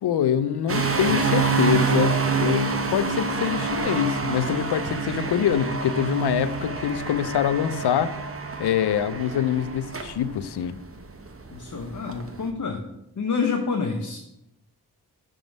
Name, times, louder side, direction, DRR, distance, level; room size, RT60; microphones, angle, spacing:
voice 1, 0.0-8.1 8.6-10.8, left 9 dB, 85° left, 13 dB, 0.5 m, -24 dB
sound 1, 0.7-12.5, right 4 dB, 35° right, 0.9 m, -27 dB
voice 2, 11.5-12.8 13.2-14.2, left 5 dB, 50° left, 3 dB, 0.8 m, -27 dB
5.9 x 3.7 x 5.1 m, 0.85 s
cardioid pair, 45°, 39 cm